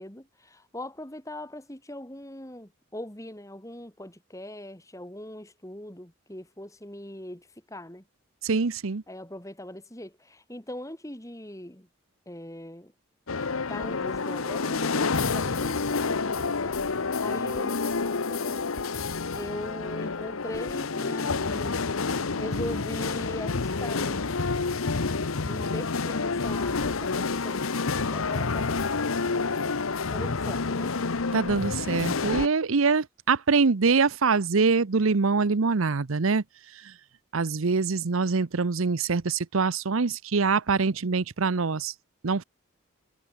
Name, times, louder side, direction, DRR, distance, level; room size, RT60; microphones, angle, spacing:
voice 1, 0.0-8.0 9.1-11.9 12.3-12.9 13.7-16.8 17.2-18.7 19.3-21.8 22.4-24.2 25.5-27.6 27.9-28.8 30.1-31.0, left 1 dB, 15° left, 2.9 m, -40 dB
voice 2, 8.4-9.0 31.3-36.4 36.8-36.9 37.3-41.9 42.2-42.4, right 4 dB, 80° right, 0.8 m, -24 dB
sound 1, 13.3-32.5, left 4 dB, 85° left, 1.0 m, -28 dB
head